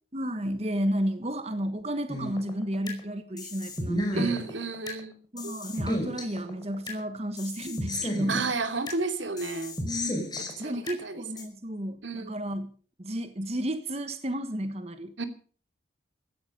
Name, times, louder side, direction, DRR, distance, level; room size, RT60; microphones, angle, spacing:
voice 1, 0.1-4.4 5.3-8.5 9.8-10.2 10.6-12.7 13.0-15.1, equal, 35° right, 10 dB, 1.3 m, -32 dB
sound 1, 2.1-3.0 3.4-5.0 5.4-7.0 7.4-9.0 9.4-11.0 11.4-11.5, left 1 dB, 20° left, 5.0 m, -33 dB
voice 2, 4.1-5.6 8.3-9.8 10.3-11.2 12.0-12.4 15.2-15.3, right 4 dB, 85° right, 8 dB, 2.8 m, -32 dB
16.5 x 14.5 x 5.4 m, 0.43 s
head